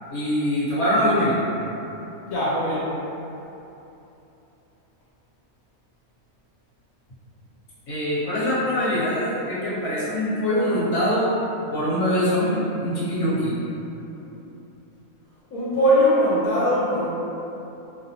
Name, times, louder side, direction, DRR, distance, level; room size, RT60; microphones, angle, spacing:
voice 1, 0.1-1.5 7.9-11.3 11.7-13.6, equal, 60° left, -11 dB, 1.3 m, -23 dB
voice 2, 2.3-2.9 15.5-17.1, equal, 80° left, -9 dB, 1.1 m, -20 dB
2.8 x 2.1 x 2.8 m, 3.0 s
omnidirectional pair, 1.5 m